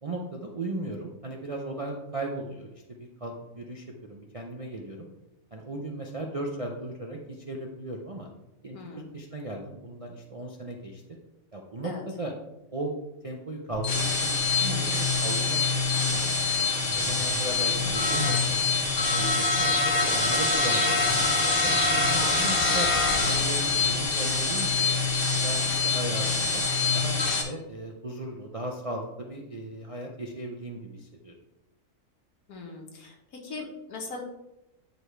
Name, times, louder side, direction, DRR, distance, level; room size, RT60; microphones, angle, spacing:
voice 1, 0.0-5.1 5.5-8.3 8.6-8.8 9.1-11.0 11.5-12.3 12.7-12.9 13.2-16.3 16.9-18.6 19.1-21.7 22.1-23.0 23.3-24.9 25.3-26.6 26.9-31.3, right 2 dB, 40° right, 0 dB, 0.5 m, -37 dB
voice 2, 8.7-9.1 11.8-12.0 17.8-18.2 22.0-22.4 32.5-34.2, left 3 dB, 75° left, 1 dB, 1.8 m, -40 dB
sound 1, 13.7-27.4, left 3 dB, 40° left, 1.1 m, -25 dB
9.3 x 4.7 x 3.3 m, 0.93 s
omnidirectional pair, 1.6 m